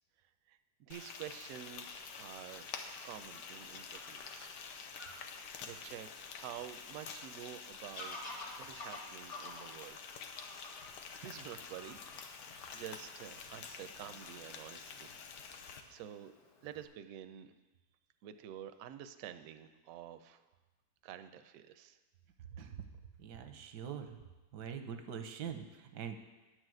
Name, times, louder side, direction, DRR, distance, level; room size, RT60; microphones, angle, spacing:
voice 1, 0.2-2.7 3.0-4.6 5.6-8.2 8.6-10.1 10.5-10.8 11.2-12.2 12.7-15.1 15.5-16.3 16.6-17.5 18.2-20.4 21.0-22.0, right 11 dB, 70° right, 10 dB, 0.9 m, -49 dB
Frying (food), 0.9-15.8, left 6 dB, 90° left, 1.4 m, -48 dB
Fowl / Bird vocalization bird call bird song, 1.1-16.9, left 2 dB, 60° left, 2.2 m, -54 dB
voice 2, 22.5-22.8 23.2-24.2 24.5-26.2, right 7 dB, 85° right, 7 dB, 1.4 m, -43 dB
10.0 x 4.9 x 7.7 m, 1.1 s
omnidirectional pair, 1.8 m